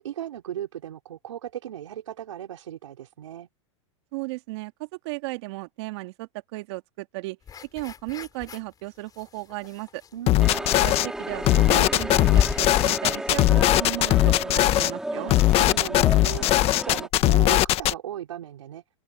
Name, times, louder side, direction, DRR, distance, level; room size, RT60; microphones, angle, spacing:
voice 1, 0.0-3.5 10.1-10.7 15.2-18.8, right 11 dB, 80° right, 4.2 m, -37 dB
voice 2, 4.1-7.4 7.7-10.0 10.8-15.3, right 23 dB, 60° right, 2.5 m, -35 dB
sound 1, 7.5-8.7 9.1-10.2 10.6-12.8, left 7 dB, 25° left, 6.6 m, -33 dB
sound 2, 10.3-11.1 11.4-14.9 15.3-17.9, left 16 dB, 40° left, 1.4 m, -20 dB
sound 3, 10.4-17.1, right 1 dB, 5° right, 5.0 m, -33 dB
open air
hypercardioid pair, 115°, 16 cm